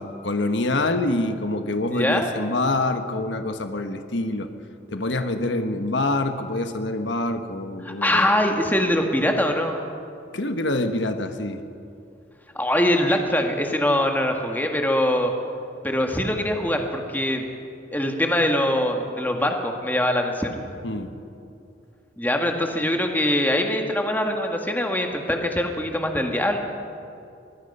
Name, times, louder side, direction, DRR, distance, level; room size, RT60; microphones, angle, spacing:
voice 1, 0.0-4.5 4.9-8.2 10.3-11.6 20.8-21.1, left 2 dB, 80° left, 7 dB, 1.3 m, -26 dB
voice 2, 1.9-2.3 7.8-9.9 12.6-15.3 15.8-17.4 17.9-20.5 22.2-26.6, left 1 dB, 10° left, 3 dB, 1.7 m, -23 dB
24.5 x 20.5 x 5.5 m, 2.5 s
head